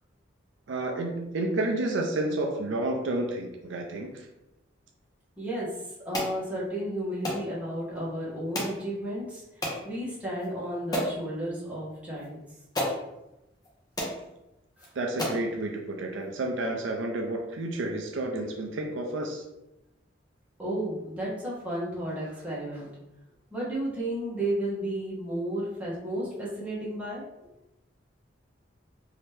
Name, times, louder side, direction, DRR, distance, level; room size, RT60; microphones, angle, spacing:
voice 1, 0.7-4.3 14.9-19.4, right 2 dB, 70° right, 2 dB, 0.5 m, -30 dB
voice 2, 5.4-5.7 6.0-9.4 9.8-12.4 14.8-14.9 20.6-22.9 23.5-27.2, right 1 dB, 5° right, -8 dB, 1.3 m, -33 dB
sound 1, 6.1-6.4 7.2-7.4 8.5-8.8 9.6-9.8 10.4-10.5 10.9-11.2 12.2-12.3 12.7-13.0 13.6-13.7 14.0-14.2 14.8-14.9 15.2-15.5, left 1 dB, 20° left, 0.8 m, -30 dB
3.1 x 2.8 x 3.3 m, 0.94 s
head